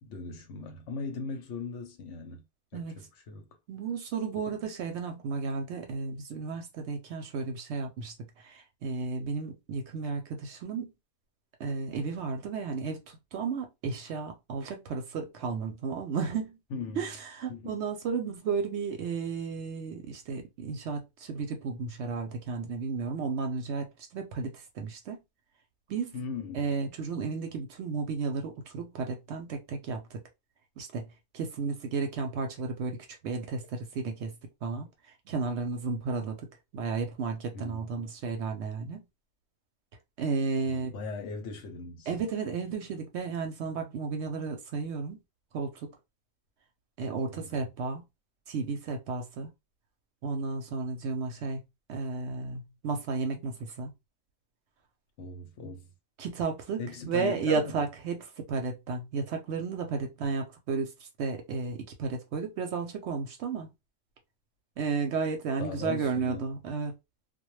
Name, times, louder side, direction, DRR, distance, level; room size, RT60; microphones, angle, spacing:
voice 1, 0.0-2.4 2.7-3.5 16.7-17.0 17.5-17.8 26.1-26.7 37.5-38.1 40.6-42.1 47.3-47.7 55.2-55.9 56.8-57.8 65.6-66.5, left 4 dB, 70° left, 0.9 m, -39 dB
voice 2, 3.7-10.9 11.6-16.6 17.0-23.9 24.1-25.2 25.9-26.2 26.5-30.2 30.8-31.1 31.3-34.3 34.6-36.5 36.7-39.0 40.2-40.9 42.1-45.2 45.5-45.9 47.0-48.0 48.5-49.5 50.2-51.6 51.9-53.9 56.2-63.7 64.8-66.9, right 4 dB, 65° right, 0.7 m, -33 dB
2.1 x 2.1 x 3.0 m
omnidirectional pair, 1.4 m